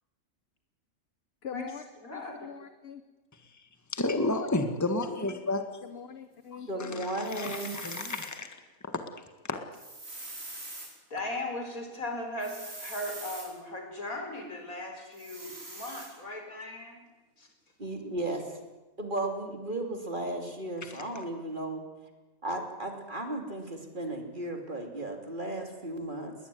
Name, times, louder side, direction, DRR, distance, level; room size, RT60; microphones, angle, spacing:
voice 1, 1.4-1.8 2.1-3.0 5.8-7.4, left 7 dB, 50° left, 11 dB, 1.2 m, -43 dB
voice 2, 2.0-2.5 11.1-17.0 17.4-17.5, left 1 dB, 75° left, 4 dB, 5.0 m, -38 dB
voice 3, 3.9-5.6 6.5-9.0 9.5-9.6 20.8-21.0, left 2 dB, 10° left, 7 dB, 1.7 m, -32 dB
voice 4, 6.7-7.8 17.8-18.6 19.0-21.8 22.4-26.3, right 1 dB, 35° right, 4 dB, 3.2 m, -35 dB
sound 1, 7.2-8.3 9.7-10.9 12.4-13.5 15.1-16.1, right 2 dB, 70° right, 6.0 m, -43 dB
21.0 x 19.5 x 9.5 m, 1.2 s
omnidirectional pair, 1.5 m